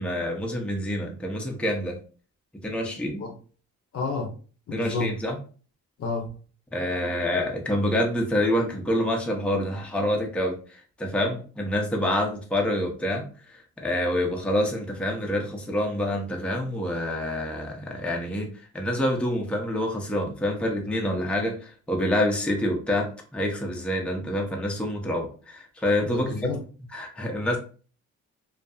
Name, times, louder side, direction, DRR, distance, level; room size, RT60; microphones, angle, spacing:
voice 1, 0.0-2.0 2.6-3.2 4.7-5.4 6.7-10.5 11.0-13.2 13.8-18.5 18.7-26.3 26.9-27.6, left 1 dB, 5° left, 0.5 m, -27 dB
voice 2, 3.9-4.3 4.7-5.1 6.0-6.3 26.0-26.6, left 3 dB, 50° left, 0.7 m, -30 dB
2.6 x 2.4 x 2.3 m
cardioid pair, 90°, 30 cm